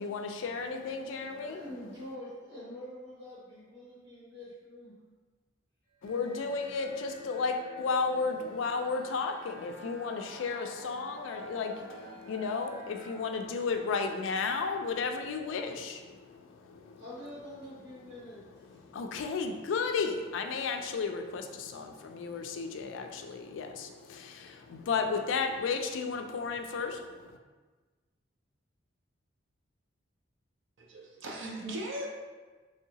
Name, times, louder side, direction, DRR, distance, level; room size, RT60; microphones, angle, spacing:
voice 1, 0.0-1.6 6.0-17.0 18.1-18.2 18.6-27.4, left 4 dB, 80° left, 5 dB, 0.3 m, -33 dB
voice 2, 1.4-4.9 17.0-18.4 18.7-18.8, left 1 dB, 65° right, -10 dB, 1.2 m, -45 dB
sound 1, 6.0-15.5, right 1 dB, 10° left, 1.0 m, -50 dB
voice 3, 30.8-32.1, right 1 dB, 80° right, -1 dB, 0.5 m, -38 dB
3.2 x 2.7 x 2.8 m, 1.3 s
head